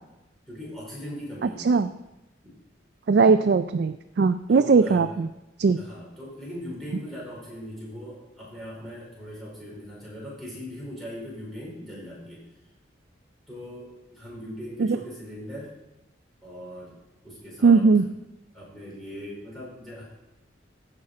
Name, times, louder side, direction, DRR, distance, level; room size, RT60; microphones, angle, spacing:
voice 1, 0.5-1.8 2.4-2.5 4.5-5.1 5.7-12.4 13.5-15.7 16.4-16.9 17.2-17.9 18.5-20.0, equal, ahead, -7 dB, 4.6 m, -40 dB
voice 2, 1.4-1.9 3.1-5.3 5.6-5.8 14.8-15.0 17.6-18.0, right 4 dB, 55° right, 10 dB, 0.3 m, -19 dB
15.0 x 5.7 x 4.8 m, 0.96 s
head